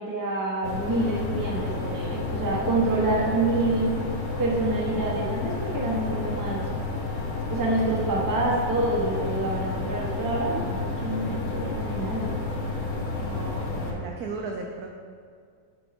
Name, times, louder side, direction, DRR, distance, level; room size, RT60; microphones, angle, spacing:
voice 1, 0.0-3.9 4.4-6.6 7.5-12.3, right 2 dB, 20° right, -3 dB, 0.5 m, -27 dB
sound 1, 0.6-13.9, left 3 dB, 65° left, 1.5 m, -31 dB
voice 2, 13.2-14.9, right 4 dB, 80° right, 1 dB, 0.8 m, -36 dB
8.0 x 4.4 x 4.2 m, 2.1 s
omnidirectional pair, 2.2 m